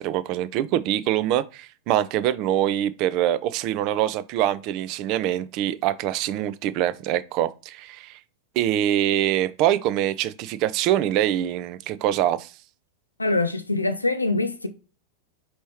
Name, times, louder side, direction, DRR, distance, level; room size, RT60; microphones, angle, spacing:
voice 1, 0.0-8.2 8.6-12.5, right 12 dB, 40° right, 0.4 m, -24 dB
voice 2, 13.2-14.7, left 2 dB, 85° left, 0.6 m, -24 dB
5.3 x 2.9 x 3.1 m
figure-of-eight pair, 90°, 0 cm